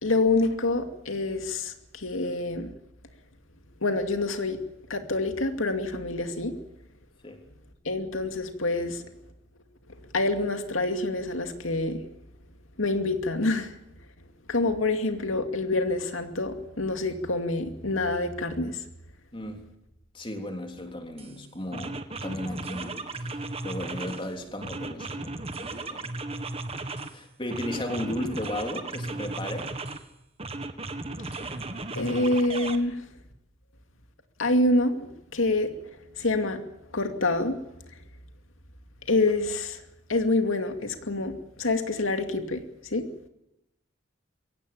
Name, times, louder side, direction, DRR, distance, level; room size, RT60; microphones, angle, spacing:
voice 1, 0.0-2.7 3.8-4.6 4.9-6.5 7.8-9.1 9.9-12.0 12.8-13.7 14.5-18.8 32.0-33.0 34.4-35.0 35.3-35.7 36.2-36.6 36.9-37.6 39.1-39.8 40.1-42.6 42.9-43.1, left 2 dB, 90° left, 6 dB, 2.5 m, -26 dB
voice 2, 19.3-19.7 20.1-26.1 27.1-29.8, left 1 dB, 25° left, 4 dB, 3.4 m, -35 dB
Game Pad, 21.2-21.3 21.7-24.3 24.6-27.2 27.5-30.0 30.4-32.8, right 2 dB, 30° right, 1.6 m, -36 dB
23.0 x 17.5 x 8.9 m, 0.86 s
head